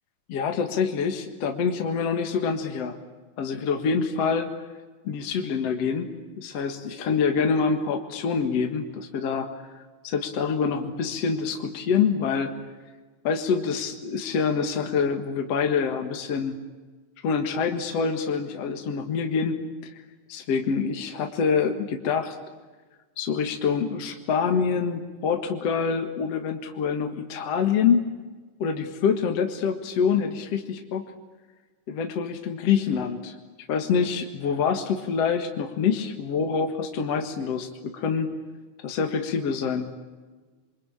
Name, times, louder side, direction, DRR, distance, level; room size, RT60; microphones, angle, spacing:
voice 1, 0.3-3.0 3.4-4.5 5.0-6.1 6.3-9.5 9.7-12.5 13.2-16.6 17.2-19.9 20.3-22.3 23.2-28.0 28.6-31.1 31.9-33.3 33.7-38.3 38.8-39.9, left 6 dB, 55° left, 5 dB, 2.6 m, -26 dB
27.5 x 24.5 x 8.9 m, 1.3 s
omnidirectional pair, 3.6 m